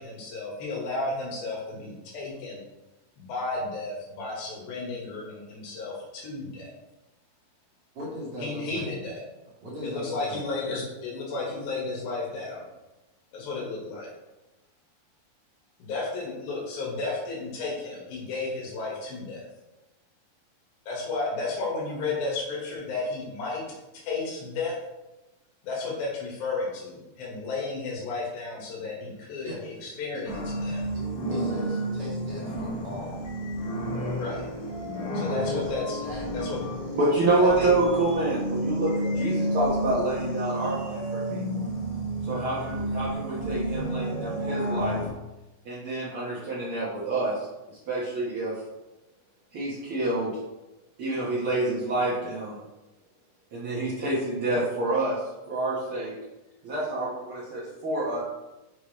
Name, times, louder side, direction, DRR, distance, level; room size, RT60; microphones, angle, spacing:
voice 1, 0.0-2.6 3.2-6.7 8.4-9.2 9.8-12.7 13.3-14.1 15.8-19.5 20.9-23.6 23.9-24.7 25.6-30.8 34.1-34.5 35.1-36.0 36.3-36.6 37.4-37.5 39.0-39.2, left 3 dB, 75° left, -3 dB, 3.4 m, -33 dB
voice 2, 7.9-8.9 9.6-10.4 29.4-29.6 30.1-30.2 30.9-31.0 31.3-33.2 35.2-35.6 36.0-36.6, equal, 55° right, -6 dB, 1.8 m, -38 dB
sound 1, 30.3-45.1, right 1 dB, 50° left, 2.7 m, -31 dB
voice 3, 36.9-41.6 42.2-45.0 45.6-47.4 47.7-48.6 49.5-50.3 51.0-52.6 53.5-55.2 55.5-56.1 56.6-58.2, right 2 dB, 80° right, -8 dB, 1.2 m, -27 dB
6.9 x 4.9 x 3.1 m, 1.0 s
omnidirectional pair, 4.4 m